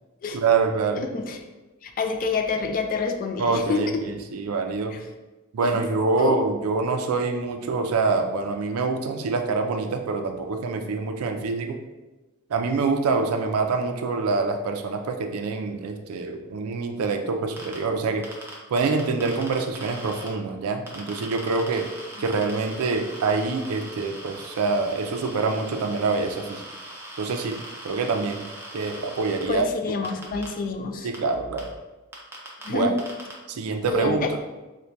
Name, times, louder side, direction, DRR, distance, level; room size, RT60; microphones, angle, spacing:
voice 1, 0.3-1.1 3.4-5.0 5.5-11.8 12.5-18.3 18.7-21.8 22.2-26.6 27.2-27.6 27.8-28.4 28.7-29.7 30.0-30.1 31.0-31.7 32.7-32.9 33.5-34.3, right 4 dB, 85° right, 5 dB, 0.4 m, -25 dB
voice 2, 1.0-1.4 1.8-3.8 4.9-5.0 5.6-5.8 6.2-6.4 29.5-31.1 32.6-33.0 33.9-34.3, left 4 dB, 40° left, 5 dB, 0.3 m, -27 dB
sound 1, 17.6-17.8 18.2-20.3 20.9-29.4 30.0-30.5 31.1-31.2 31.6-31.7 32.1-32.7 33.0-33.3, right 1 dB, 10° right, 0.6 m, -40 dB
4.3 x 2.2 x 2.5 m, 1.1 s
head